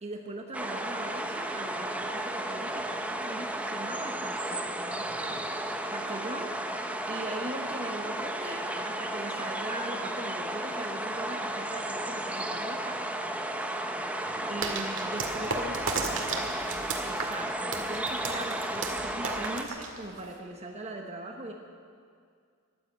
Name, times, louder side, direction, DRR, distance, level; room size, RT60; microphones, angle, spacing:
voice 1, 0.0-5.5 5.9-13.0 14.5-15.8 17.0-21.5, right 2 dB, 30° right, 2 dB, 1.0 m, -40 dB
sound 1, 0.5-19.6, right 1 dB, 5° right, 0.7 m, -33 dB
voice 2, 4.9-5.5 14.2-14.6 15.1-16.8, equal, 30° left, -4 dB, 5.6 m, -50 dB
sound 2, 14.6-20.4, right 4 dB, 65° right, 1.9 m, -34 dB
15.0 x 11.5 x 8.1 m, 2.2 s
head